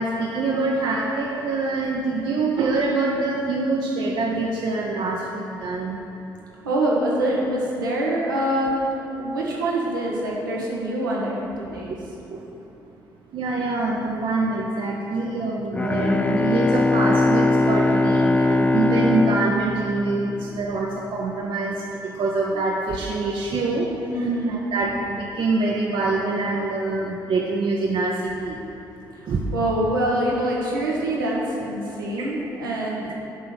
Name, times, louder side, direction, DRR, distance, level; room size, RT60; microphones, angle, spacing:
voice 1, 0.0-6.0 11.7-12.0 12.3-12.4 13.3-23.9 24.5-28.6 29.3-29.5 32.2-32.3, right 3 dB, 50° right, -2 dB, 0.7 m, -25 dB
voice 2, 6.6-11.9 24.1-24.6 29.5-33.1, right 1 dB, 90° right, -4 dB, 1.0 m, -25 dB
Bowed string instrument, 15.7-20.7, left 2 dB, 15° left, 0.3 m, -21 dB
8.0 x 3.8 x 6.5 m, 2.9 s
hypercardioid pair, 45°, 11 cm